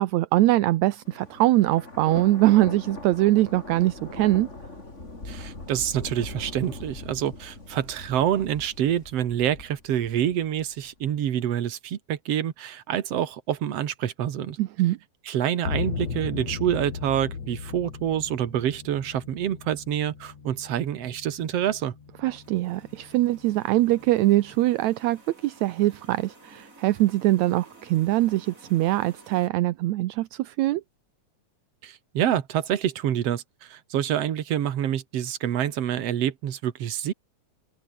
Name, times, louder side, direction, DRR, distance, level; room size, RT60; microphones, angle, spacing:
voice 1, 0.0-4.5 14.6-15.0 22.2-30.8, right 16 dB, 80° right, 2.0 m, -22 dB
Thunder, 1.0-10.9, left 2 dB, 25° left, 4.5 m, -41 dB
voice 2, 5.3-14.6 15.3-21.9 31.8-37.1, right 10 dB, 60° right, 2.5 m, -27 dB
sound 1, 15.6-24.7, left 5 dB, 65° left, 4.8 m, -37 dB
sound 2, 22.3-29.5, right 2 dB, 25° right, 6.7 m, -53 dB
open air
omnidirectional pair, 3.3 m